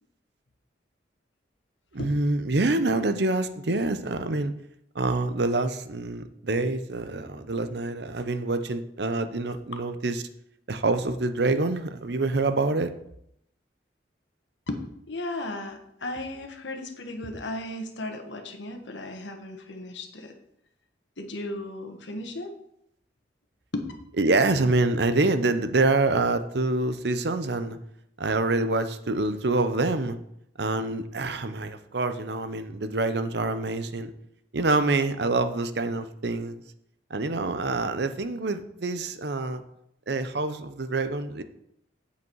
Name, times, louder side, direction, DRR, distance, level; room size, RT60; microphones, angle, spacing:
voice 1, 1.9-4.5 4.9-10.2 10.7-12.9 24.2-27.8 28.2-30.2 30.6-34.1 34.5-36.6 37.1-39.6 40.1-41.4, right 2 dB, 65° right, 10 dB, 0.7 m, -26 dB
voice 2, 15.1-20.3 21.2-22.5 23.7-23.9, left 1 dB, 80° left, 5 dB, 1.4 m, -35 dB
8.2 x 8.1 x 4.7 m, 0.75 s
head